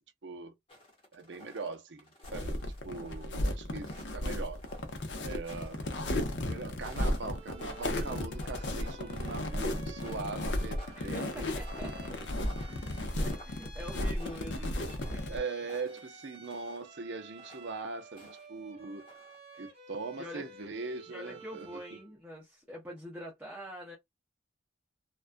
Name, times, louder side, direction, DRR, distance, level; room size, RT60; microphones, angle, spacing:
voice 1, 0.2-0.5 1.1-4.6 5.2-5.8 6.4-11.5 15.2-19.1 19.6-21.7, right 4 dB, 60° right, 0.5 m, -41 dB
sound 1, 0.7-3.3 3.7-6.4 6.8-8.9 9.1-9.6 10.0-16.9 17.4-18.5 18.8-19.4, left 1 dB, 25° left, 0.8 m, -53 dB
sound 2, 2.2-15.4, left 1 dB, 60° left, 0.6 m, -34 dB
Bowed string instrument, 7.3-22.1, right 2 dB, 30° right, 0.8 m, -53 dB
voice 2, 10.9-15.4 19.5-19.7 20.2-20.5 21.1-24.0, equal, 10° right, 0.5 m, -45 dB
2.3 x 2.2 x 2.5 m
head